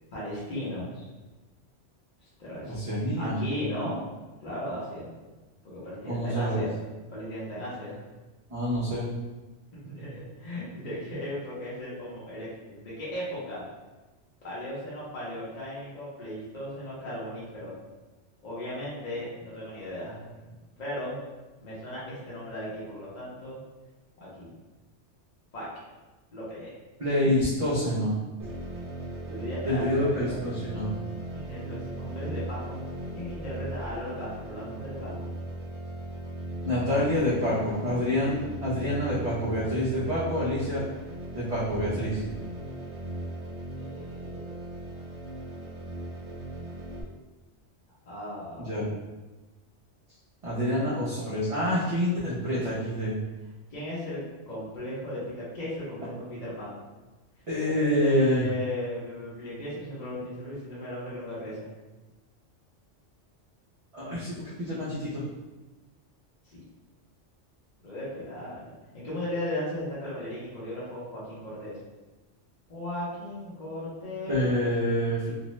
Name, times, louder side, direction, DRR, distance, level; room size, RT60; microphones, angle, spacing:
voice 1, 0.1-1.0 2.4-2.8 3.1-4.0 4.4-5.1 5.6-6.7 7.1-8.0 9.9-13.6 14.4-17.8 18.4-20.3 20.8-21.2 21.6-23.6 24.2-24.5 25.5-25.7 26.3-26.7 29.3-30.4 31.3-32.8 33.1-35.1 43.8-44.6 48.1-48.9 50.7-51.1 53.7-56.8 57.7-61.7 66.4-66.6 67.8-71.8 72.7-74.7, left 1 dB, 45° left, -8 dB, 0.8 m, -36 dB
voice 2, 2.6-3.4 6.1-6.7 8.5-9.1 27.0-28.1 29.6-30.9 36.6-40.8 41.3-42.2 48.6-48.9 50.4-53.2 57.5-58.4 63.9-65.2 74.3-75.3, left 1 dB, 40° right, -9 dB, 0.5 m, -27 dB
sound 1, 28.4-47.0, right 1 dB, 75° right, 0.9 m, -38 dB
2.6 x 2.1 x 3.0 m, 1.2 s
omnidirectional pair, 1.2 m